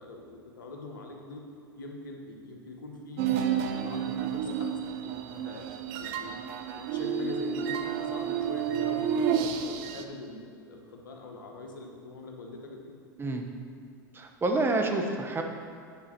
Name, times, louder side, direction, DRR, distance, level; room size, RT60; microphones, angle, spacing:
voice 1, 0.0-1.4 1.8-6.3 6.7-12.9, left 2 dB, 85° left, 1 dB, 1.2 m, -43 dB
sound 1, 3.2-10.0, right 8 dB, 60° right, 0.6 m, -30 dB
voice 2, 14.1-15.4, right 2 dB, 20° right, 4 dB, 1.0 m, -28 dB
8.8 x 4.7 x 6.0 m, 2.3 s
hypercardioid pair, 90°, 11 cm